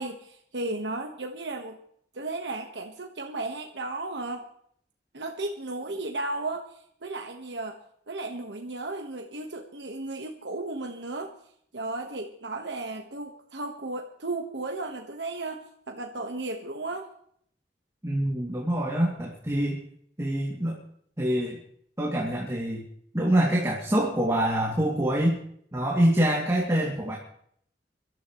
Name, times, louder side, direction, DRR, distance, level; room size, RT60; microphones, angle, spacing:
voice 1, 0.0-1.8 2.1-4.4 5.1-7.8 8.1-11.3 11.7-17.1, right 2 dB, 80° right, 3 dB, 1.5 m, -34 dB
voice 2, 18.0-19.8 20.2-20.8 21.2-21.6 22.0-22.8 23.1-25.4 25.7-27.2, right 1 dB, 15° right, -2 dB, 2.6 m, -25 dB
24.0 x 13.0 x 3.2 m, 0.66 s
head